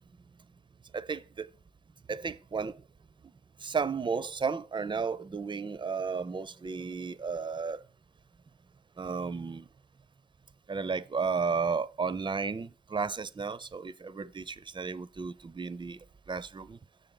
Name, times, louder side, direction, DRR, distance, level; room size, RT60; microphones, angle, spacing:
voice 1, 0.9-1.5 2.1-2.8 3.6-7.8 9.0-9.6 10.7-16.0 16.3-16.8, right 5 dB, 25° right, 0.5 m, -33 dB
6.6 x 6.5 x 3.9 m
supercardioid pair, 45°, 17 cm